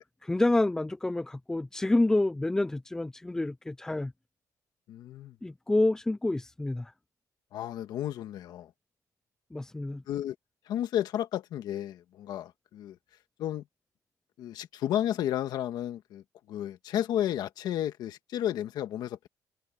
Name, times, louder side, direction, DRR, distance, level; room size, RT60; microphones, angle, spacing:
voice 1, 0.2-4.1 5.4-6.9 9.5-10.0, left 2 dB, 10° left, 0.3 m, -28 dB
voice 2, 4.9-5.3 7.5-8.7 10.1-10.3 10.7-13.0 13.4-13.6 14.4-19.3, left 11 dB, 80° left, 1.6 m, -32 dB
cardioid pair, 145°, 7 cm